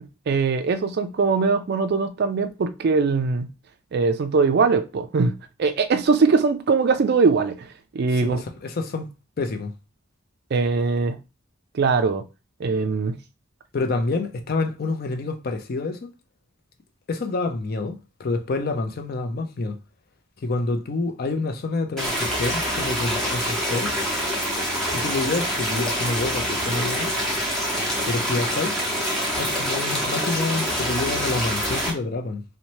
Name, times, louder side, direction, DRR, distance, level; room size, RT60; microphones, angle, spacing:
voice 1, 0.0-3.5 3.9-5.3 5.6-7.7 7.9-8.4 10.5-11.2 11.7-12.2 12.6-13.2, right 4 dB, 50° right, 0.4 m, -21 dB
voice 2, 8.1-9.1 9.4-9.7 13.7-16.1 17.1-19.8 20.4-23.9 24.9-27.2 28.1-28.8 29.4-32.4, left 3 dB, 45° left, 0.5 m, -27 dB
sound 1, 22.0-31.9, equal, 5° left, 0.7 m, -25 dB
2.7 x 2.1 x 3.0 m
head